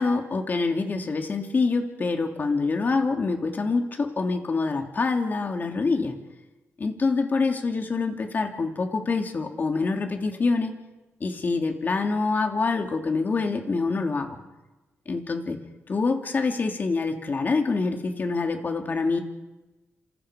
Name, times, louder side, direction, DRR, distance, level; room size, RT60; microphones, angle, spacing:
voice 1, 0.0-6.1 6.8-10.7 11.2-14.4 15.1-15.6 15.9-19.2, left 4 dB, 40° left, 4 dB, 3.1 m, -26 dB
28.0 x 27.0 x 5.3 m, 1.1 s
cardioid pair, 100°, 5 cm